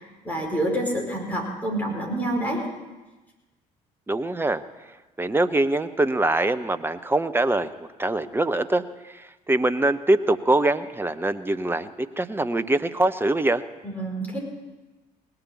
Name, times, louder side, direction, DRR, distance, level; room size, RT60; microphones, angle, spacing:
voice 1, 0.0-2.6 13.8-14.4, right 1 dB, 10° left, -2 dB, 5.1 m, -27 dB
voice 2, 4.1-4.6 5.2-7.7 8.0-13.6, right 2 dB, 10° right, 11 dB, 0.8 m, -23 dB
18.5 x 6.9 x 9.4 m, 1.1 s
figure-of-eight pair, 45°, 20 cm